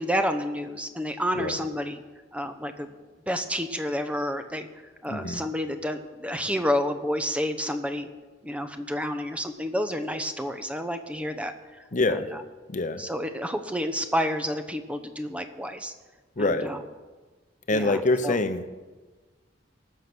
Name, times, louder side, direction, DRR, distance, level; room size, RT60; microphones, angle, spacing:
voice 1, 0.0-2.0 2.3-2.9 3.3-4.7 5.0-8.1 8.4-11.5 12.1-12.4 13.0-15.9 16.4-16.8 17.7-18.4, equal, 5° right, 8 dB, 0.8 m, -29 dB
voice 2, 5.1-5.4 11.9-12.3 12.7-13.0 16.4-16.7 17.7-18.7, left 2 dB, 45° left, 9 dB, 0.9 m, -25 dB
19.0 x 6.7 x 6.1 m, 1.3 s
head